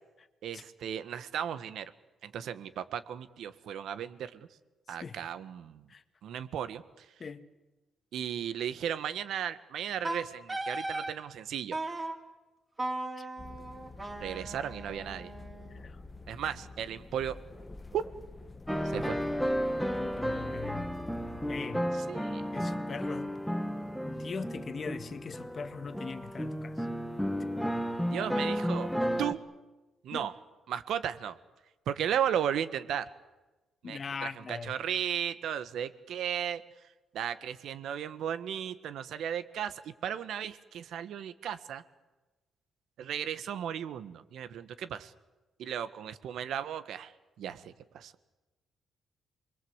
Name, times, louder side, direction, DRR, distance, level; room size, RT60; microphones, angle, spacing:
voice 1, 0.4-1.9 2.2-4.5 4.9-5.9 6.2-7.0 8.1-11.8 14.2-15.3 16.3-17.4 17.9-18.0 18.8-19.2 22.1-22.4 28.0-28.9 29.2-29.4 30.0-30.3 30.7-31.4 31.9-33.1 33.8-36.6 37.1-41.8 43.0-45.1 45.6-47.1 47.4-48.1, right 9 dB, 75° right, 1.6 m, -35 dB
Wind instrument woodwind instrument, 10.0-11.1 11.7-12.2 12.8-15.8, right 2 dB, 20° right, 3.1 m, -37 dB
sound 1, 13.4-21.6, left 3 dB, 15° left, 1.1 m, -48 dB
voice 2, 15.7-16.0 20.0-20.9 21.5-21.8 22.5-23.3 24.0-26.9 30.1-30.3 33.8-34.7, left 5 dB, 35° left, 1.6 m, -41 dB
sound 2, 18.7-29.3, equal, ahead, 1.6 m, -33 dB
28.0 x 22.0 x 8.2 m
cardioid pair, 150°, 0 cm